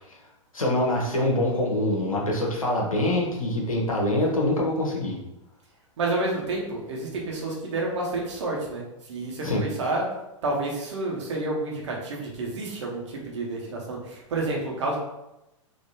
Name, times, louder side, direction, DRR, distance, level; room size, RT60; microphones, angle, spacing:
voice 1, 0.5-5.2 9.4-9.7, left 1 dB, 80° left, -2 dB, 1.0 m, -24 dB
voice 2, 6.0-8.8 9.1-10.0 10.4-15.0, right 2 dB, 60° right, -2 dB, 1.1 m, -29 dB
3.7 x 2.8 x 2.8 m, 0.90 s
figure-of-eight pair, 100°, 17 cm